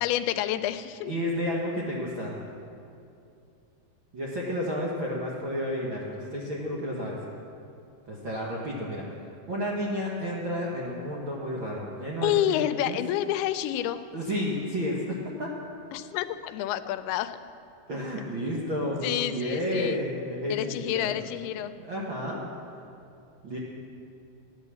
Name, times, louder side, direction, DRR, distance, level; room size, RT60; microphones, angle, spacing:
voice 1, 0.0-1.1 12.2-14.0 15.9-17.4 19.0-20.0 20.5-21.7, left 12 dB, 85° left, 12 dB, 2.5 m, -28 dB
voice 2, 1.1-2.4 4.1-7.2 8.1-9.2 9.5-13.0 14.1-15.5 17.9-21.2 21.8-22.4 23.4-23.6, equal, 60° right, -4 dB, 1.3 m, -31 dB
14.5 x 9.9 x 6.9 m, 2.6 s
omnidirectional pair, 4.4 m